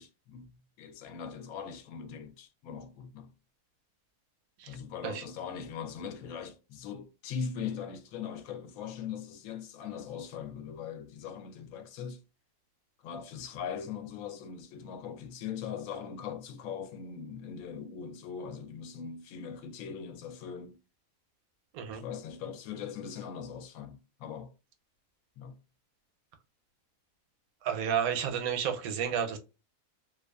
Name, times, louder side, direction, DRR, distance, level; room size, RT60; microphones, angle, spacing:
voice 1, 0.0-3.3 4.7-12.2 13.0-20.8 21.9-24.5 25.4-25.6, left 7 dB, 80° left, 1.0 m, -40 dB
voice 2, 27.6-29.4, right 8 dB, 85° right, 1.0 m, -31 dB
2.5 x 2.3 x 2.3 m
omnidirectional pair, 1.5 m